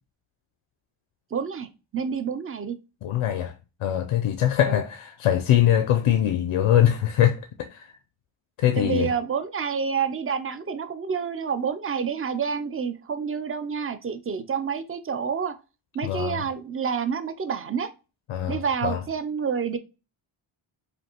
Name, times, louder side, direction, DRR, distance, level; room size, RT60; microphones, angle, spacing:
voice 1, 1.3-1.7 1.9-2.7 4.7-4.8 8.8-15.5 15.9-17.9 18.5-19.8, right 6 dB, 30° right, 0.4 m, -28 dB
voice 2, 3.0-3.5 3.8-7.9 8.6-9.1 16.0-16.4 18.3-19.0, left 11 dB, 85° left, 0.6 m, -22 dB
5.1 x 2.6 x 2.8 m
wide cardioid pair, 140°, 50 cm